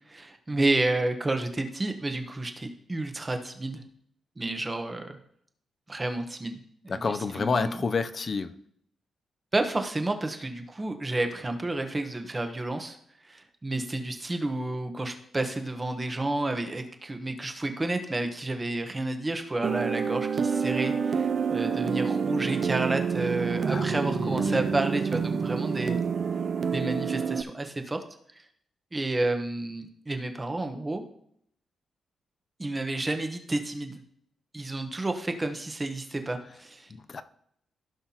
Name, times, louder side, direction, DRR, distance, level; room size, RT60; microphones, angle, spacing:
voice 1, 0.1-3.8 4.4-5.2 5.9-7.8 9.5-13.0 13.2-26.0 26.7-28.0 28.3-28.4 28.9-31.0 32.6-34.0 34.5-36.9, right 2 dB, 20° right, 6 dB, 1.0 m, -30 dB
voice 2, 6.9-8.5 23.7-24.7 36.9-37.2, left 4 dB, 40° left, 10 dB, 0.5 m, -30 dB
sound 1, 19.6-27.4, right 6 dB, 45° right, 0.4 m, -28 dB
15.5 x 5.8 x 2.9 m, 0.68 s
wide cardioid pair, 135°, 0 cm